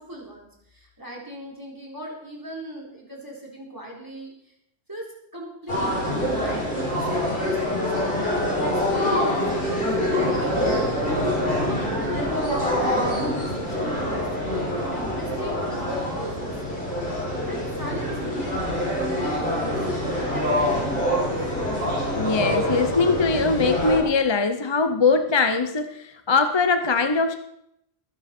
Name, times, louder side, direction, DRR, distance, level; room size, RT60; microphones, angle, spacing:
voice 1, 0.0-4.5 4.9-8.3 8.6-11.0 11.6-14.6 14.9-17.0 17.4-21.3, right 1 dB, 20° right, -2 dB, 4.0 m, -39 dB
sound 1, 5.7-24.0, left 1 dB, 60° left, 5.0 m, -25 dB
voice 2, 22.1-27.3, left 4 dB, 30° left, 8 dB, 0.7 m, -21 dB
20.0 x 9.4 x 4.4 m, 0.76 s
omnidirectional pair, 1.1 m